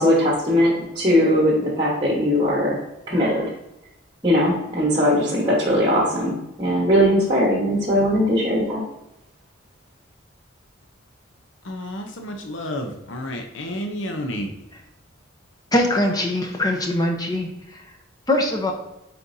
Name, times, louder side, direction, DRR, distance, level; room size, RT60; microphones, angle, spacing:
voice 1, 0.0-2.8 3.1-3.5 4.2-8.8, equal, 20° right, -3 dB, 1.2 m, -20 dB
voice 2, 11.6-14.5, left 1 dB, 70° left, 4 dB, 0.7 m, -30 dB
voice 3, 15.7-17.5 18.3-18.7, left 1 dB, 20° left, 3 dB, 0.8 m, -21 dB
8.4 x 4.3 x 2.7 m, 0.91 s
head